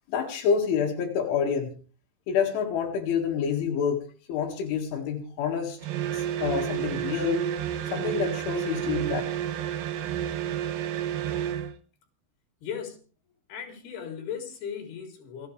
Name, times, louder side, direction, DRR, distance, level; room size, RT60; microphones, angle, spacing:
voice 1, 0.1-1.8 2.3-5.8 6.1-7.5 7.9-9.2, left 7 dB, 85° left, 0 dB, 4.6 m, -28 dB
sound 1, 5.8-11.8, right 10 dB, 70° right, 2.2 m, -30 dB
voice 2, 12.6-13.0 13.5-15.5, left 8 dB, 60° left, 3 dB, 5.5 m, -37 dB
28.5 x 10.0 x 3.3 m, 0.37 s
omnidirectional pair, 5.4 m